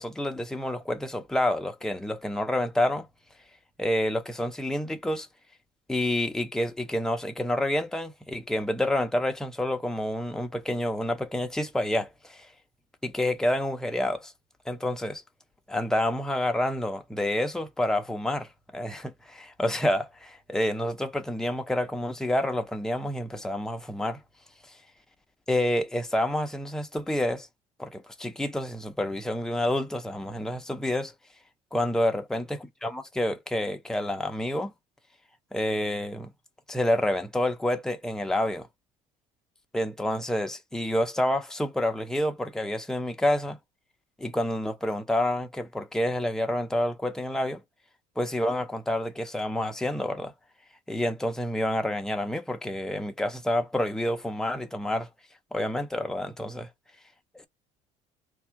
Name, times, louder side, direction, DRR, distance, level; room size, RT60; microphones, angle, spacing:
voice 1, 0.0-3.1 3.8-5.3 5.9-12.5 13.0-14.3 14.7-15.2 15.7-24.2 25.5-27.5 27.8-31.1 31.7-34.7 35.5-36.3 36.7-38.7 39.7-43.6 44.2-47.6 48.2-50.3 50.9-55.1 55.5-56.7, left 1 dB, 5° left, 0.6 m, -28 dB
3.4 x 2.4 x 4.5 m
cardioid pair, 135°, 13 cm